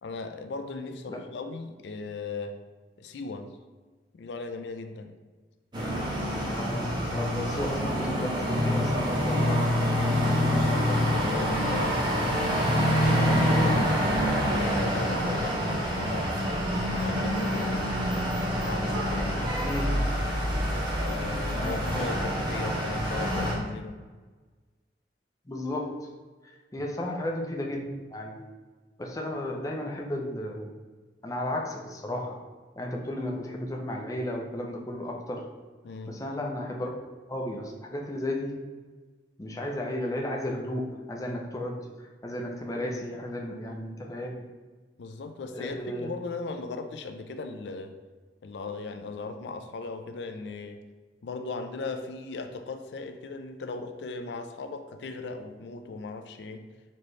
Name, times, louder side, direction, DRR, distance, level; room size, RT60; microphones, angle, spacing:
voice 1, 0.0-2.6 3.0-3.5 4.1-5.2 10.3-12.6 13.0-16.5 17.0-17.8 18.6-19.5 21.0-24.0 35.8-36.2 45.0-48.0 48.4-50.8 51.2-56.7, left 3 dB, 75° left, 7 dB, 0.4 m, -38 dB
sound 1, 5.7-23.5, equal, 25° right, 1.0 m, -26 dB
voice 2, 6.4-9.7 19.6-19.8 21.5-22.1 25.5-26.1 26.4-27.8 28.1-28.5 29.0-30.7 31.2-32.4 32.8-35.5 36.1-36.9 37.3-38.6 39.4-44.4 45.5-46.1, left 1 dB, 20° left, 0 dB, 0.5 m, -34 dB
4.3 x 3.1 x 3.1 m, 1.4 s
head